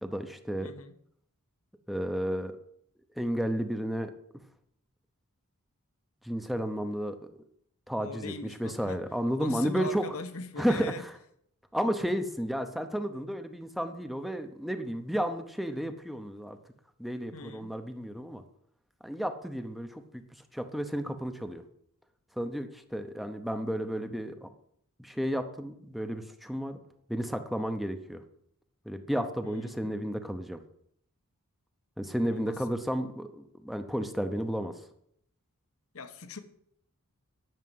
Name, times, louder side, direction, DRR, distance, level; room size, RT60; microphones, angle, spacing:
voice 1, 0.0-0.7 1.9-2.6 3.2-4.1 6.2-7.3 7.9-10.0 10.6-10.9 11.7-16.6 17.0-18.4 19.0-20.2 20.5-21.6 22.4-24.5 25.0-26.8 27.1-28.2 28.9-30.6 32.0-34.7, equal, ahead, 7 dB, 0.8 m, -32 dB
voice 2, 0.6-0.9 8.0-9.0 9.4-11.1 17.3-17.8 29.4-30.1 32.3-32.6 35.9-36.4, left 3 dB, 70° left, 10 dB, 1.1 m, -41 dB
11.0 x 6.7 x 7.7 m, 0.70 s
head